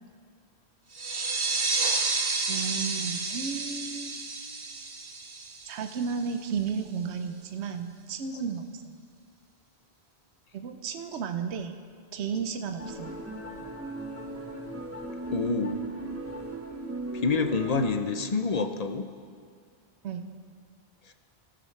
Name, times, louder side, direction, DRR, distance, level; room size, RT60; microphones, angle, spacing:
sound 1, 0.9-6.3, right 3 dB, 30° right, 0.5 m, -31 dB
voice 1, 2.5-4.2 5.7-8.9 10.5-11.8 12.1-13.1 20.0-20.4, right 6 dB, 85° right, 7 dB, 1.0 m, -33 dB
sound 2, 12.8-18.0, right 3 dB, 15° right, 1.1 m, -37 dB
voice 2, 15.3-15.9 17.1-19.1 21.1-21.2, left 4 dB, 45° left, 7 dB, 0.6 m, -28 dB
15.0 x 13.0 x 3.2 m, 2.1 s
omnidirectional pair, 1.1 m